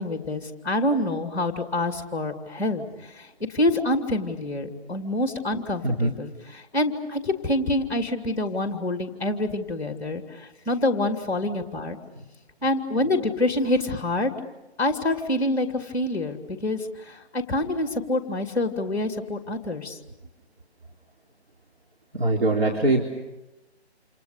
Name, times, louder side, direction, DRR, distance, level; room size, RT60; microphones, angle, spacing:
voice 1, 0.0-12.0 12.6-14.3 14.8-20.0, left 1 dB, 10° left, 5 dB, 2.5 m, -26 dB
voice 2, 22.1-23.0, right 2 dB, 60° right, -1 dB, 4.0 m, -22 dB
28.5 x 28.5 x 6.8 m, 1.0 s
figure-of-eight pair, 150°, 33 cm